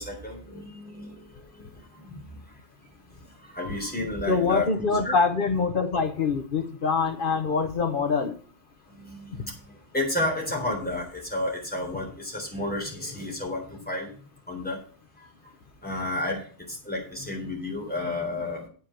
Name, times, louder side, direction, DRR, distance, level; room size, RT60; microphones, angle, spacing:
voice 1, 0.0-2.9 3.4-4.7 5.0-5.2 8.9-14.1 14.5-14.8 15.2-15.3 15.8-18.7, left 1 dB, 10° left, -2 dB, 3.7 m, -32 dB
voice 2, 4.3-8.4, left 4 dB, 50° left, 8 dB, 1.0 m, -24 dB
8.5 x 5.7 x 7.4 m, 0.43 s
omnidirectional pair, 1.2 m